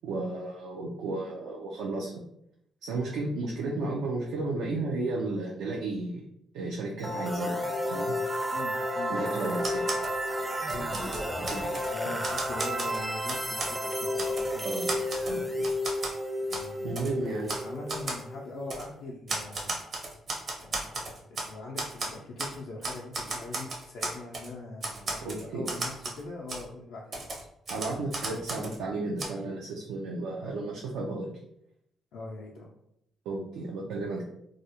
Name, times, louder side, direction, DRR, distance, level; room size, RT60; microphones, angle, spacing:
voice 1, 0.0-2.2 2.8-6.2 6.5-7.6 7.9-8.1 9.1-9.9 14.6-14.9 15.2-15.7 16.8-17.5 25.2-25.7 27.7-31.3 33.3-34.3, right 2 dB, 90° right, -2 dB, 0.4 m, -33 dB
sound 1, 7.0-18.8, equal, 10° right, 0.4 m, -32 dB
voice 2, 8.5-9.2 10.7-11.0 11.9-14.9 16.4-17.2 17.6-19.7 20.6-27.5 30.4-30.6 32.1-32.7, left 2 dB, 80° left, -3 dB, 0.4 m, -42 dB
Typewriter, 9.6-10.2 10.6-11.9 12.2-13.8 14.2-14.5 14.9-16.2 16.5-16.7 17.0-17.1 17.5-17.6 17.9-18.2 18.7-18.9 19.3-21.5 21.8-22.6 22.8-24.5 24.8-26.2 26.5-26.6 27.1-28.8 29.2-29.3, right 2 dB, 50° right, 0.6 m, -35 dB
2.3 x 2.0 x 2.8 m, 0.76 s
cardioid pair, 90°, 0 cm